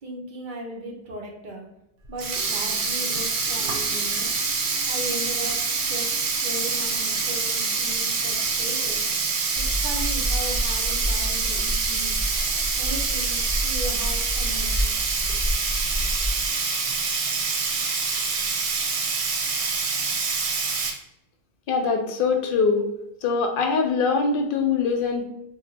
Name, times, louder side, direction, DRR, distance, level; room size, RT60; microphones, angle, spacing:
voice 1, 0.0-1.7 2.1-4.3 4.9-9.0 9.6-12.1 12.7-15.0, right 1 dB, 55° right, 1 dB, 0.7 m, -37 dB
Sink (filling or washing), 2.1-20.9, right 4 dB, 80° right, 0.9 m, -26 dB
sound 1, 9.6-16.5, equal, 35° right, 1.4 m, -29 dB
voice 2, 21.7-22.9 23.2-25.3, left 5 dB, 60° left, 3 dB, 0.7 m, -23 dB
2.5 x 2.1 x 3.9 m, 0.83 s
omnidirectional pair, 1.1 m